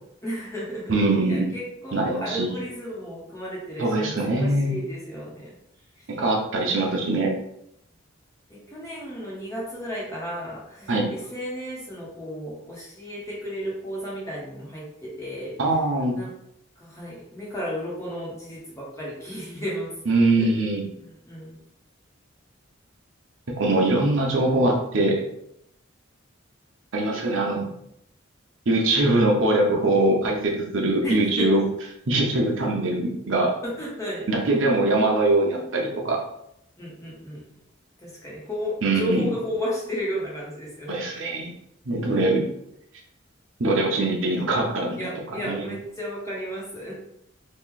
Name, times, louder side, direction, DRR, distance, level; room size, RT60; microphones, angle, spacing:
voice 1, 0.2-5.5 6.0-6.1 8.5-15.5 16.1-16.3 16.8-19.9 20.4-20.5 21.0-21.6 31.0-31.6 33.6-34.3 36.8-37.4 38.0-40.9 45.0-46.9, equal, 15° left, -5 dB, 1.1 m, -33 dB
voice 2, 0.9-1.5 1.9-2.6 3.8-4.7 6.1-7.3 10.9-11.1 15.6-16.2 20.1-20.8 23.5-25.2 26.9-27.7 28.7-31.6 32.1-33.5 34.3-36.2 38.8-39.2 40.9-41.5 41.9-42.5 43.6-45.1 45.4-45.7, right 2 dB, 70° right, 0 dB, 0.7 m, -22 dB
3.0 x 2.4 x 3.7 m, 0.76 s
head